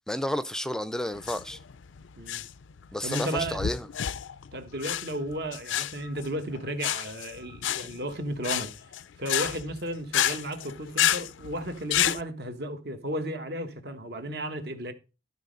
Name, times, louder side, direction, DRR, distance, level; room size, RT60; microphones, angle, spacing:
voice 1, 0.1-1.6 2.9-3.9, left 1 dB, 5° left, 0.4 m, -31 dB
sound 1, 1.1-12.2, left 11 dB, 85° left, 0.4 m, -30 dB
voice 2, 3.0-3.6 4.5-8.7 9.2-14.9, right 1 dB, 55° right, 1.3 m, -34 dB
12.5 x 4.1 x 5.2 m
head